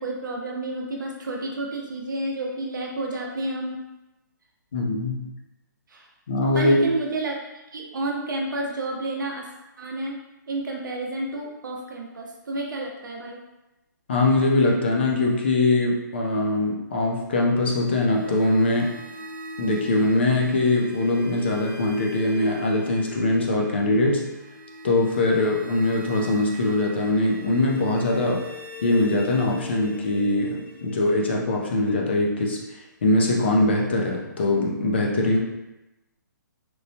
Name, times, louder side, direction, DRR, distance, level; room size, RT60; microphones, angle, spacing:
voice 1, 0.0-3.8 5.9-6.1 6.5-7.4 7.7-9.5 9.8-10.2 10.5-13.4, right 2 dB, 75° right, 0 dB, 0.6 m, -30 dB
voice 2, 4.7-5.2 6.3-6.8 14.1-18.9 19.6-24.2 24.8-28.4 28.8-35.4, left 2 dB, 35° left, -1 dB, 0.3 m, -22 dB
sound 1, 17.5-32.4, left 2 dB, 5° right, 0.7 m, -41 dB
2.9 x 2.0 x 2.6 m, 0.98 s
hypercardioid pair, 175°, 11 cm